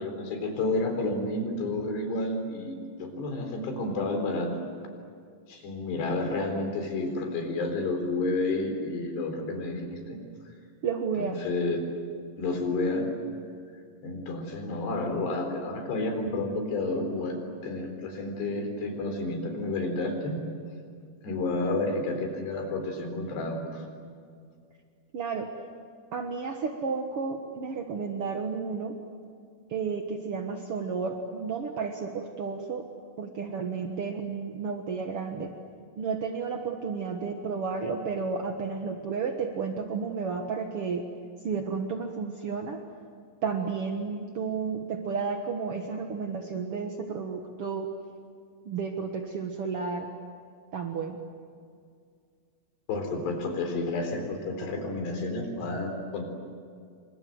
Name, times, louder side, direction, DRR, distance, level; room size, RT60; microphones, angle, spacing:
voice 1, 0.0-4.6 5.5-10.2 11.2-11.8 12.4-13.1 14.0-20.4 21.2-23.8 52.9-56.2, left 2 dB, 80° left, 4 dB, 6.2 m, -30 dB
voice 2, 10.8-11.4 25.1-25.5 26.1-28.9 29.7-32.8 33.2-35.5 36.0-41.1 41.4-42.8 43.4-47.9 48.6-50.1 50.7-51.2, right 5 dB, 60° right, 3 dB, 1.5 m, -32 dB
29.0 x 24.5 x 7.9 m, 2.2 s
omnidirectional pair, 4.8 m